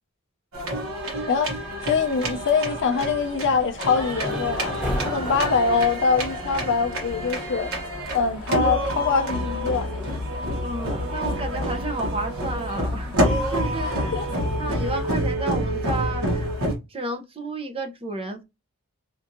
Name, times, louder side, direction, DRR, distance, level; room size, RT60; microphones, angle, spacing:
sound 1, 0.5-16.7, equal, 65° right, 1.2 m, -28 dB
voice 1, 1.3-4.8 5.0-7.7 8.1-9.9 13.9-14.3, left 5 dB, 55° left, 0.5 m, -24 dB
sound 2, 3.9-15.3, left 1 dB, 5° right, 1.3 m, -37 dB
voice 2, 10.6-14.1 14.6-16.5 16.9-18.4, right 2 dB, 25° right, 0.6 m, -31 dB
4.5 x 2.5 x 2.6 m
head